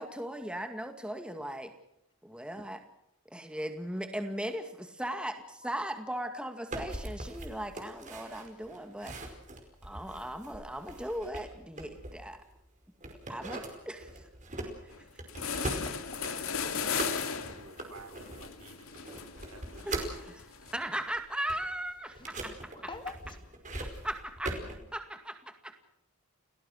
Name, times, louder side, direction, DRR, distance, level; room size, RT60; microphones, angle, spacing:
voice 1, 0.0-1.7 2.2-2.8 3.3-9.2 9.8-12.4 13.3-13.6 13.9-14.3 19.9-20.4 20.7-22.5 24.0-25.4 25.6-25.7, right 1 dB, 5° right, 6 dB, 2.1 m, -38 dB
Mallet percussion, 5.6-7.7, left 9 dB, 60° left, 5.6 m, -59 dB
sound 1, 6.7-12.6 13.0-20.2 20.7-24.8, right 2 dB, 35° right, 4.9 m, -41 dB
voice 2, 13.5-13.9 22.1-23.4, left 3 dB, 20° left, 8 dB, 2.3 m, -46 dB
sound 2, 14.9-15.0 15.3-20.7, left 6 dB, 75° left, 2.5 m, -36 dB
voice 3, 16.8-19.1 19.5-20.4 20.7-20.9, right 3 dB, 75° right, 10 dB, 3.5 m, -53 dB
30.0 x 18.5 x 6.5 m, 0.79 s
head